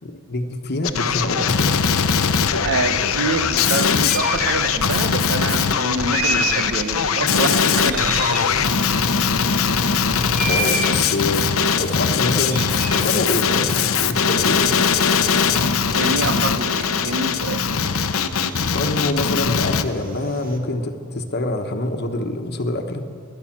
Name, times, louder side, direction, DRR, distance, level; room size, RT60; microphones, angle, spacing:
voice 1, 0.0-1.8 10.4-11.5 11.8-14.8 18.7-23.1, left 2 dB, 50° left, 6 dB, 1.2 m, -25 dB
Male speech man speaking, 0.8-19.8, left 6 dB, 75° left, 0.8 m, -20 dB
voice 2, 2.6-8.3 15.9-17.7, right 3 dB, 60° right, 9 dB, 0.9 m, -26 dB
sound 1, 2.9-20.6, right 3 dB, 45° right, 1.7 m, -34 dB
16.0 x 11.5 x 7.4 m, 2.3 s
head